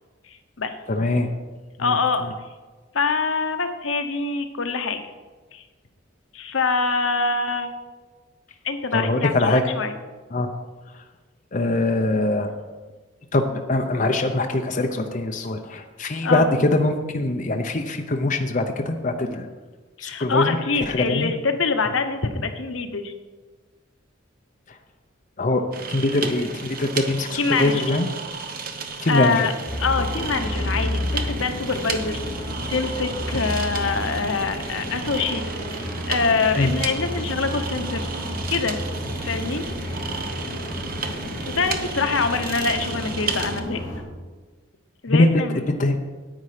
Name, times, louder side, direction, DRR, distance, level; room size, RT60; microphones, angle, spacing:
voice 1, 0.9-1.3 1.8-2.0 8.9-9.6 10.3-10.5 11.5-12.5 13.3-19.5 20.0-20.6 20.9-21.3 24.7-24.8 25.4-25.6 25.9-28.1 29.0-29.5 36.6-36.7 45.1-45.3 45.7-46.0, left 2 dB, 40° left, 4 dB, 0.7 m, -22 dB
voice 2, 1.8-2.2 2.9-5.0 5.5-5.6 6.3-7.7 8.6-9.9 16.2-16.5 20.0-23.1 27.4-27.8 29.1-29.5 29.8-32.2 32.7-35.4 35.7-38.1 38.5-38.8 39.2-39.7 41.5-43.8 45.0-45.6, left 4 dB, 80° left, 7 dB, 0.9 m, -25 dB
sound 1, 25.7-43.6, right 5 dB, 45° right, 0.9 m, -33 dB
sound 2, 29.6-44.0, left 1 dB, 20° left, 3.6 m, -31 dB
9.8 x 8.4 x 5.0 m, 1.3 s
head